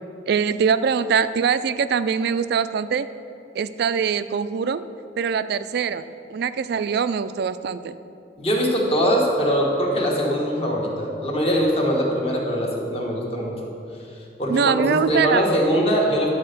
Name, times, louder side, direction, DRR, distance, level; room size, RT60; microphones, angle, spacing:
voice 1, 0.3-3.1 3.5-4.8 5.2-6.0 6.3-8.0 14.5-15.5, right 6 dB, 60° right, 13 dB, 0.3 m, -23 dB
voice 2, 8.4-13.5 14.4-16.3, equal, 30° left, -1 dB, 1.4 m, -22 dB
10.5 x 4.4 x 6.6 m, 2.7 s
head